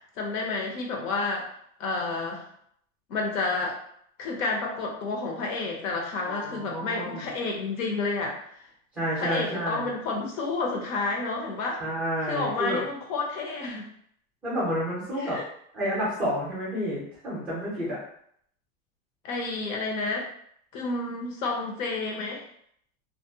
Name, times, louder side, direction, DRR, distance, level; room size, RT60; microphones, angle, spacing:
voice 1, 0.2-1.5 1.8-2.5 3.1-3.8 4.2-8.4 9.2-11.8 12.2-13.9 15.2-15.4 19.2-20.3 20.7-22.4, left 3 dB, 70° left, 0 dB, 0.9 m, -30 dB
voice 2, 6.2-7.3 9.0-9.9 11.8-12.8 14.4-15.4 15.7-18.0, equal, 5° right, -9 dB, 0.4 m, -30 dB
2.4 x 2.0 x 2.6 m, 0.67 s
supercardioid pair, 170°, 41 cm